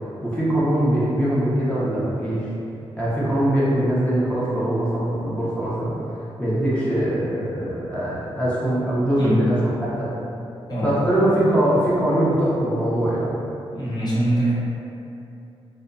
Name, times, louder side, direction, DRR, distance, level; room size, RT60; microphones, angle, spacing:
voice 1, 0.2-2.5 3.0-5.9 6.4-10.1 10.8-13.3, right 1 dB, 10° left, -10 dB, 0.6 m, -22 dB
voice 2, 13.7-14.5, right 1 dB, 40° left, -8 dB, 0.8 m, -23 dB
2.6 x 2.1 x 2.5 m, 2.7 s
cardioid pair, 85°, 11 cm